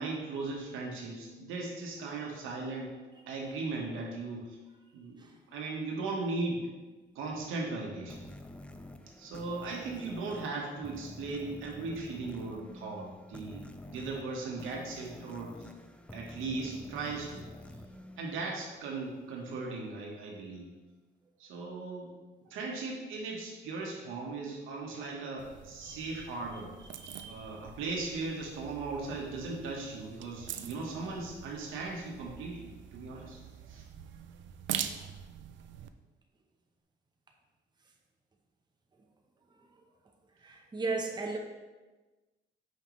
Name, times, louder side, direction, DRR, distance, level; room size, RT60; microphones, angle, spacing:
voice 1, 0.0-3.0 3.3-4.6 4.9-6.6 7.1-8.3 9.2-15.7 16.1-17.4 18.2-20.7 21.4-22.1 22.4-26.7 27.2-33.4 33.7-33.8, right 3 dB, 90° right, -1 dB, 1.3 m, -38 dB
sound 1, 8.1-19.3, left 1 dB, 5° left, 0.4 m, -49 dB
sound 2, 25.4-35.9, right 9 dB, 70° right, 0.4 m, -44 dB
voice 2, 25.8-26.1 26.9-27.5 40.4-41.4, right 3 dB, 20° right, 1 dB, 0.8 m, -36 dB
5.6 x 5.4 x 3.1 m, 1.2 s
cardioid pair, 90°, 20 cm